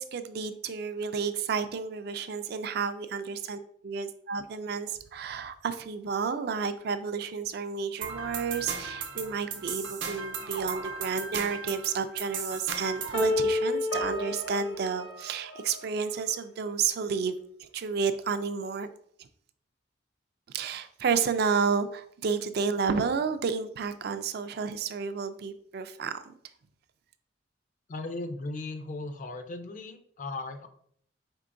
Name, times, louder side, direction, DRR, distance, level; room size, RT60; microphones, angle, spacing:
voice 1, 0.0-18.9 20.5-26.3, right 5 dB, 55° right, 10 dB, 0.3 m, -31 dB
sound 1, 8.0-13.3, right 6 dB, 70° right, 0.8 m, -36 dB
sound 2, 13.1-16.1, left 3 dB, 85° left, 1.1 m, -31 dB
voice 2, 27.9-30.7, left 2 dB, 40° left, 8 dB, 0.4 m, -37 dB
4.5 x 3.6 x 2.5 m, 0.64 s
head